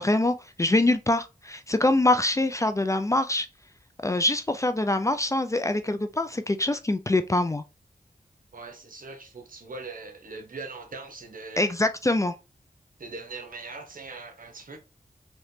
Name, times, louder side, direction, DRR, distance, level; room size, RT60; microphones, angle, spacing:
voice 1, 0.0-3.5 4.0-7.6 11.6-12.3, left 2 dB, 20° left, 0.4 m, -24 dB
voice 2, 8.5-11.7 13.0-14.8, right 3 dB, 65° right, 1.0 m, -41 dB
3.2 x 2.9 x 2.7 m
cardioid pair, 50°, 15 cm